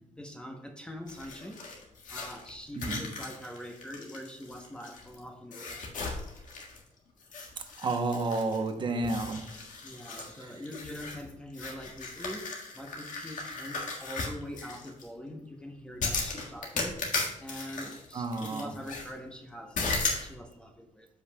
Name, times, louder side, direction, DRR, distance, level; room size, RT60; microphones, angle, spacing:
voice 1, 0.2-5.9 9.8-21.1, equal, 5° left, 2 dB, 0.8 m, -44 dB
sound 1, 1.1-5.2 5.5-6.9 7.2-8.7 9.0-15.0 16.0-19.1 19.8-20.3, left 3 dB, 75° left, 1.6 m, -37 dB
voice 2, 7.8-9.4 10.2-10.3 18.1-18.7, right 3 dB, 35° right, 6 dB, 0.8 m, -31 dB
13.5 x 5.3 x 2.2 m, 0.88 s
wide cardioid pair, 155°, 13 cm